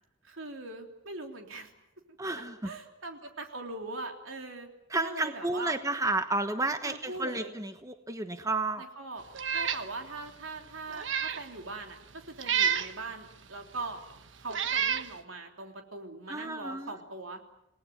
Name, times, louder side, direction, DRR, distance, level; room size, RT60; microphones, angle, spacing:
voice 1, 0.2-1.7 2.6-4.7 5.0-5.8 6.8-7.5 8.8-9.2 9.5-14.0 14.4-17.4, right 3 dB, 90° right, 4 dB, 3.4 m, -41 dB
voice 2, 2.2-2.7 4.9-8.8 16.3-16.9, right 2 dB, 15° right, 8 dB, 1.1 m, -31 dB
Meow, 9.3-9.9 10.3-10.4 10.9-11.4 12.4-12.9 13.8-13.9 14.5-15.1, right 8 dB, 65° right, 1.2 m, -29 dB
28.0 x 19.0 x 9.4 m, 0.87 s
head